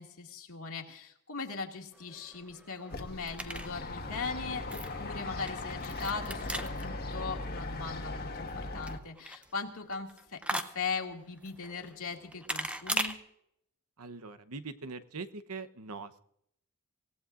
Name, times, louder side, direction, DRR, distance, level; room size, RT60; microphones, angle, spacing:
voice 1, 0.0-13.2, left 4 dB, 65° left, 2 dB, 2.2 m, -39 dB
sound 1, 1.9-13.1, right 1 dB, 5° right, 0.8 m, -41 dB
sound 2, 2.9-9.0, left 2 dB, 45° left, 1.6 m, -39 dB
voice 2, 14.0-16.2, right 4 dB, 75° right, 12 dB, 0.9 m, -42 dB
26.5 x 17.0 x 2.5 m, 0.74 s
head